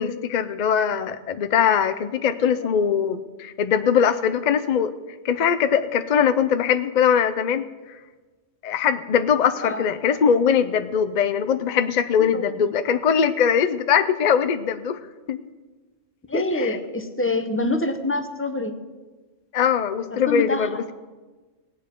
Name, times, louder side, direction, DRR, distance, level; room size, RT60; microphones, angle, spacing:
voice 1, 0.0-4.9 5.2-7.6 8.6-15.0 15.3-15.4 16.3-16.8 19.5-20.9, left 7 dB, 60° left, 11 dB, 0.4 m, -21 dB
voice 2, 9.6-9.9 12.2-12.7 16.3-18.8 20.1-20.7, left 2 dB, 15° left, 7 dB, 0.7 m, -26 dB
17.5 x 9.3 x 4.5 m, 1.3 s
omnidirectional pair, 1.3 m